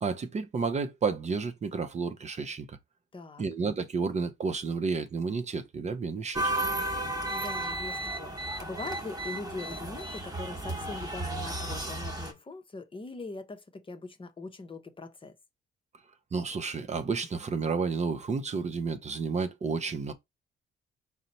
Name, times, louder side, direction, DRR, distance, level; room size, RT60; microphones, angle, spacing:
voice 1, 0.0-2.8 3.4-6.5 16.3-20.1, right 4 dB, 35° right, 0.6 m, -31 dB
voice 2, 3.1-3.4 7.3-15.3, left 3 dB, 25° left, 0.7 m, -41 dB
sound 1, 6.3-12.3, right 2 dB, 20° right, 1.1 m, -33 dB
4.1 x 2.1 x 4.0 m
cardioid pair, 90°, 20 cm